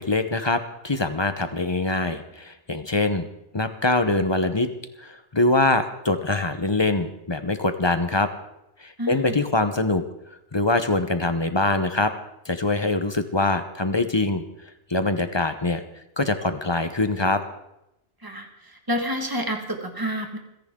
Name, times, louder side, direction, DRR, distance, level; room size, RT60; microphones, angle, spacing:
voice 1, 0.0-3.3 3.5-4.7 5.0-8.3 8.8-10.0 10.5-12.1 12.4-14.4 14.9-15.8 16.2-17.4, left 2 dB, 25° left, 9 dB, 0.9 m, -23 dB
voice 2, 9.0-9.4 18.2-20.4, equal, 20° right, 4 dB, 1.8 m, -29 dB
28.0 x 10.5 x 3.8 m, 0.86 s
omnidirectional pair, 1.2 m